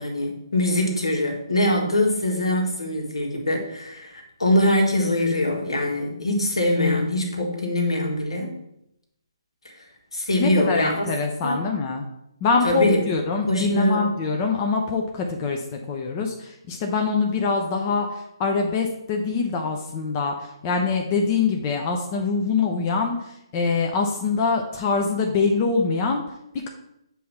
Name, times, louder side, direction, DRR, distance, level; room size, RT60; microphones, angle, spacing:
voice 1, 0.0-8.6 10.1-11.1 11.4-11.6 12.6-13.0 13.5-14.2, left 1 dB, 75° left, 1 dB, 1.7 m, -23 dB
voice 2, 10.4-12.0 12.4-26.2, left 4 dB, 25° left, 2 dB, 0.7 m, -24 dB
7.3 x 2.8 x 5.6 m, 0.80 s
figure-of-eight pair, 140°, 3 cm